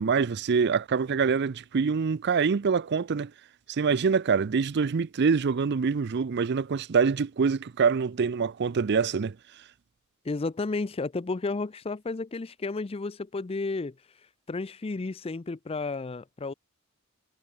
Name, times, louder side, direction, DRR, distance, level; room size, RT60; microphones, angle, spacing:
voice 1, 0.0-3.3 3.7-9.3, right 5 dB, 50° right, 0.4 m, -25 dB
voice 2, 10.2-13.9 14.5-16.5, left 3 dB, 25° left, 0.4 m, -32 dB
head